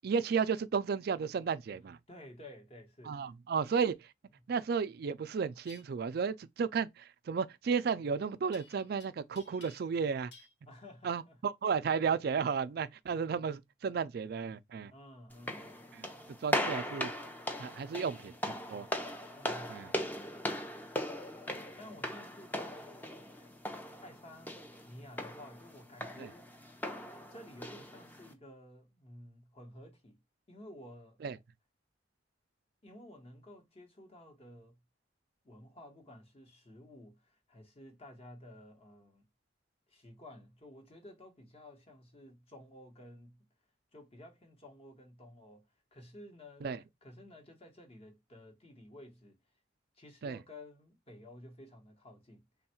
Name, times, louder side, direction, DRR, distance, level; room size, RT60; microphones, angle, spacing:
voice 1, 0.0-2.0 3.1-4.0 4.5-10.3 11.0-14.9 16.0-16.1 16.4-17.1 17.6-18.9 19.7-19.9 26.2-26.3 31.2-31.4 46.6-46.8 50.2-50.4, right 6 dB, 55° right, 0.4 m, -33 dB
voice 2, 2.1-3.3 4.3-4.5 10.6-11.4 14.9-16.0 19.3-19.8 21.7-23.5 24.0-24.5 24.9-26.5 27.3-30.2 30.5-31.2 32.8-34.8 35.4-39.3 39.9-43.4 43.9-49.4 49.9-52.7, left 1 dB, 35° left, 1.0 m, -53 dB
sound 1, 5.6-5.8 8.5-9.1 9.4-10.0 10.3-10.5, left 5 dB, 60° left, 0.7 m, -56 dB
sound 2, 15.3-28.3, equal, 10° left, 0.6 m, -39 dB
3.4 x 2.3 x 4.2 m
head